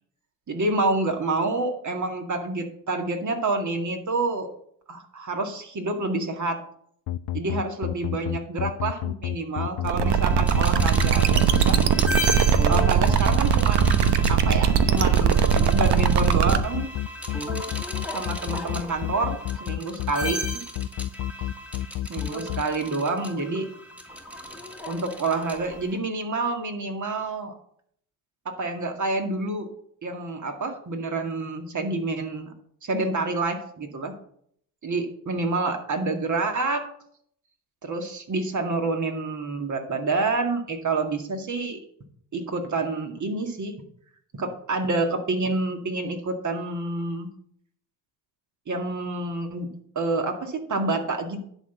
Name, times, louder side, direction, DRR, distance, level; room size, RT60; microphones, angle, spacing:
voice 1, 0.5-4.5 4.9-6.6 7.3-11.8 12.7-16.9 18.1-20.4 22.1-23.7 24.9-27.5 28.5-29.7 30.0-32.5 32.8-34.1 34.8-36.8 37.8-41.8 42.3-43.7 44.3-47.3 48.7-49.7 50.0-51.4, right 3 dB, 35° right, 4 dB, 2.1 m, -28 dB
sound 1, 7.1-22.6, left 14 dB, 45° left, 0.5 m, -29 dB
sound 2, 9.8-16.6, right 9 dB, 55° right, 1.0 m, -20 dB
sound 3, 10.0-26.0, equal, 5° right, 1.8 m, -35 dB
10.5 x 4.2 x 7.3 m, 0.66 s
supercardioid pair, 75°, 50 cm